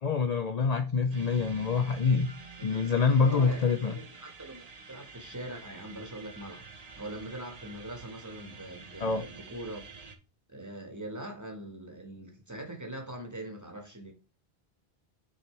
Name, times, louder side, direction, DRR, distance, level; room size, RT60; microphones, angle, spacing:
voice 1, 0.0-2.3 2.6-4.0 9.0-9.3, left 5 dB, 50° left, 0.5 m, -26 dB
sound 1, 1.1-10.2, right 5 dB, 40° right, 0.9 m, -48 dB
voice 2, 2.6-2.9 3.2-9.8 10.5-14.1, right 1 dB, 15° right, 1.5 m, -42 dB
7.3 x 4.3 x 3.3 m
omnidirectional pair, 1.1 m